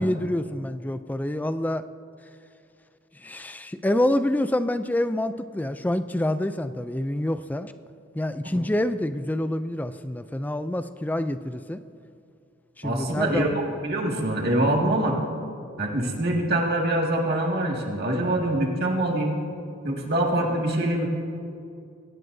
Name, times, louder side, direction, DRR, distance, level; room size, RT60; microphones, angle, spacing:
voice 1, 0.0-1.8 3.2-7.7 8.1-11.8 12.8-13.5, left 1 dB, 10° left, 11 dB, 0.3 m, -27 dB
voice 2, 12.8-15.2 15.8-19.4 19.8-21.1, right 1 dB, 55° right, -1 dB, 2.1 m, -24 dB
22.5 x 17.0 x 2.7 m, 2.4 s
head